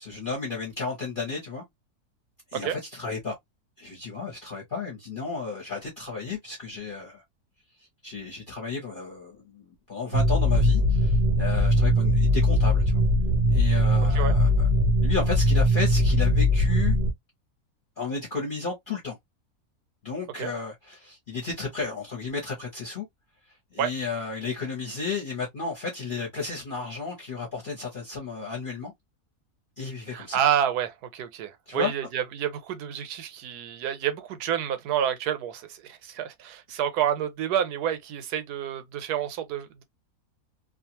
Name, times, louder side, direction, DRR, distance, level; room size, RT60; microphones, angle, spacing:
voice 1, 0.0-1.6 2.5-3.3 3.8-7.2 8.0-13.0 13.5-14.7 15.0-17.0 18.0-19.2 20.0-23.1 23.7-28.9 29.8-30.4 31.7-31.9, left 4 dB, 40° left, 0.9 m, -33 dB
sound 1, 10.1-17.1, equal, 65° right, 0.5 m, -21 dB
voice 2, 30.1-39.8, right 9 dB, 85° right, 1.2 m, -29 dB
2.6 x 2.4 x 2.7 m
omnidirectional pair, 1.6 m